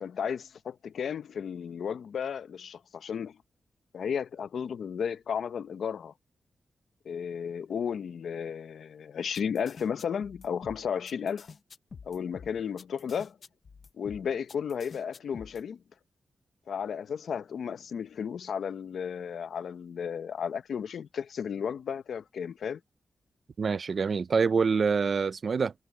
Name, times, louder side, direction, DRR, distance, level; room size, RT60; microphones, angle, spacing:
voice 1, 0.0-3.4 3.9-6.1 7.0-11.5 12.1-13.4 14.0-15.8 16.7-22.8, left 7 dB, 85° left, 0.7 m, -34 dB
sound 1, 9.3-15.6, left 5 dB, 45° left, 0.9 m, -48 dB
voice 2, 23.6-25.7, right 5 dB, 45° right, 0.4 m, -26 dB
wide cardioid pair, 175°, 0 cm